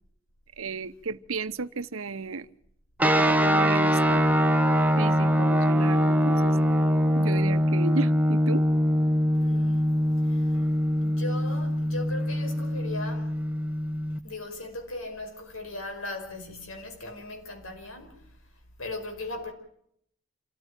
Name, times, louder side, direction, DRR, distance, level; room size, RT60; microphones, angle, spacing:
voice 1, 0.6-2.5 3.0-4.2 5.0-6.6 7.2-8.6, right 4 dB, 80° right, 0.9 m, -34 dB
sound 1, 3.0-14.2, equal, 10° right, 1.0 m, -23 dB
voice 2, 9.3-9.9 10.2-10.6 11.0-13.4 14.1-18.5 18.8-19.5, left 2 dB, 85° left, 5.3 m, -38 dB
27.5 x 14.5 x 9.0 m
head